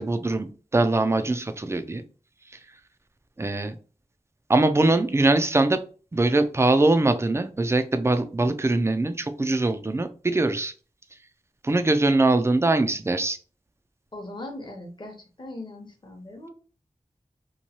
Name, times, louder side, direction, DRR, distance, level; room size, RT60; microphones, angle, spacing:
voice 1, 0.0-2.0 3.4-3.8 4.5-5.8 6.1-10.7 11.6-13.4, right 2 dB, 20° right, 9 dB, 0.4 m, -22 dB
voice 2, 14.1-16.5, left 1 dB, 35° left, 2 dB, 0.8 m, -39 dB
3.0 x 2.2 x 2.7 m, 0.38 s
wide cardioid pair, 45°, 13 cm